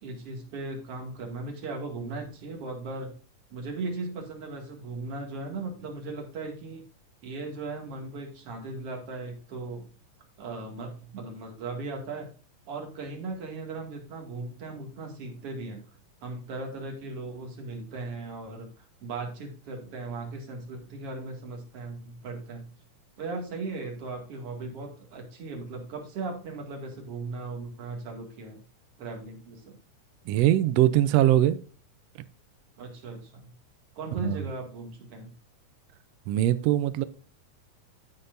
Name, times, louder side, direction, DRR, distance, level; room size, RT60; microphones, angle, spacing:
voice 1, 0.0-3.1 3.5-6.9 7.2-9.9 10.4-12.3 12.7-15.8 16.2-18.7 19.0-22.7 23.2-28.6 29.0-29.8 32.8-33.5 33.9-35.3, right 3 dB, 50° right, 3.0 m, -37 dB
voice 2, 30.3-31.6 34.2-34.4 36.3-37.0, right 13 dB, 85° right, 1.4 m, -22 dB
15.5 x 5.8 x 2.6 m
omnidirectional pair, 3.6 m